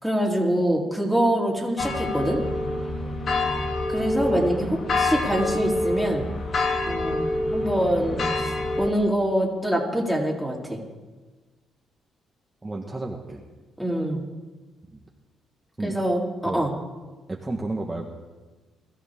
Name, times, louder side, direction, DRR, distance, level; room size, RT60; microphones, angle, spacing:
voice 1, 0.0-2.4 3.9-6.3 6.8-10.8 13.8-14.2 15.8-16.7, equal, 5° left, -2 dB, 3.7 m, -25 dB
sound 1, 1.8-8.9, left 2 dB, 55° left, 2.8 m, -26 dB
voice 2, 12.6-13.4 14.9-15.0 15.8-15.9 16.4-16.6 17.3-18.0, right 2 dB, 20° right, -1 dB, 1.5 m, -32 dB
21.5 x 14.0 x 3.7 m, 1.3 s
cardioid pair, 90°, 0 cm